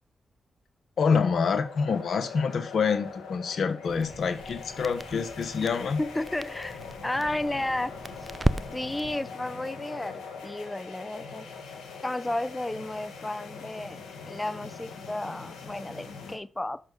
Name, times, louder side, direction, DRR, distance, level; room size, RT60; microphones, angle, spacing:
voice 1, 1.0-6.0, left 5 dB, 70° left, 1.2 m, -26 dB
sound 1, 1.4-16.4, left 5 dB, 90° left, 1.8 m, -42 dB
Crackle, 3.9-9.2, right 2 dB, 25° right, 0.6 m, -35 dB
voice 2, 6.0-7.9 8.7-10.1 10.4-11.5 12.0-16.8, left 1 dB, 20° left, 0.8 m, -33 dB
7.3 x 6.0 x 6.8 m
supercardioid pair, 40°, 0 cm